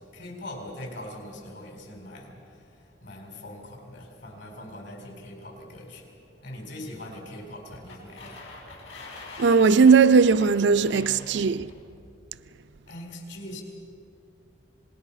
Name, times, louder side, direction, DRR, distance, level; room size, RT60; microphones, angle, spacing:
voice 1, 0.0-8.5 12.9-13.6, left 1 dB, 70° left, 4.5 m, -42 dB
sound 1, 7.7-11.8, left 2 dB, 85° left, 6.3 m, -44 dB
voice 2, 9.4-11.7, right 5 dB, 65° right, 0.4 m, -18 dB
26.5 x 20.0 x 5.8 m
head